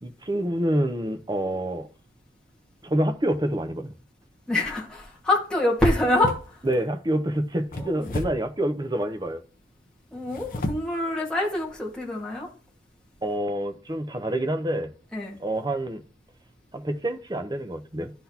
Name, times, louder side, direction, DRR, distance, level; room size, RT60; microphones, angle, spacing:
voice 1, 0.0-1.9 2.8-3.9 6.6-9.4 13.2-14.9 15.4-16.0 16.7-18.1, right 1 dB, 20° right, 0.7 m, -27 dB
sound 1, 4.5-4.9 5.9-6.8 7.7-8.6 10.2-11.0 11.5-11.7 12.2-12.3, left 1 dB, 50° left, 0.8 m, -34 dB
voice 2, 4.5-6.4 7.8-8.2 10.1-12.5 15.1-15.4, left 1 dB, 5° left, 1.6 m, -25 dB
12.0 x 4.0 x 2.8 m
head